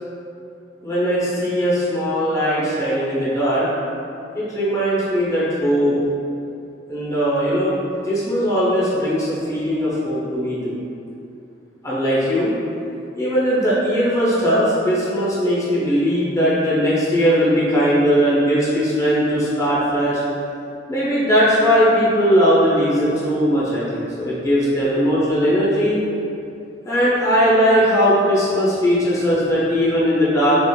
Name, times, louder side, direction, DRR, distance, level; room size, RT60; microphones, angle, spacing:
voice 1, 0.8-3.7 4.3-5.9 6.9-7.8 8.0-10.8 11.8-12.5 13.2-20.2 20.9-26.0 26.8-30.7, equal, 15° left, -9 dB, 0.6 m, -19 dB
3.6 x 2.4 x 2.2 m, 2.6 s
head